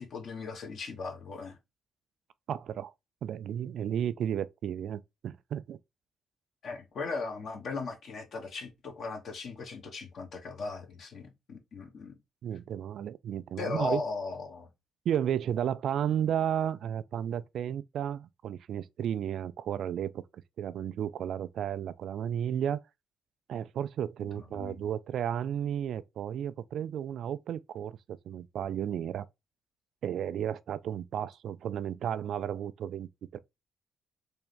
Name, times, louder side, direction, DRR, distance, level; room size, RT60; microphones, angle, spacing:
voice 1, 0.0-1.6 6.6-12.2 13.6-14.7 24.3-24.8, left 4 dB, 60° left, 1.3 m, -38 dB
voice 2, 2.5-2.9 3.2-5.8 12.4-14.0 15.1-22.8 23.5-28.0 28.3-29.3 30.0-33.4, right 9 dB, 65° right, 0.3 m, -33 dB
3.5 x 2.9 x 3.3 m
hypercardioid pair, 45°, 0 cm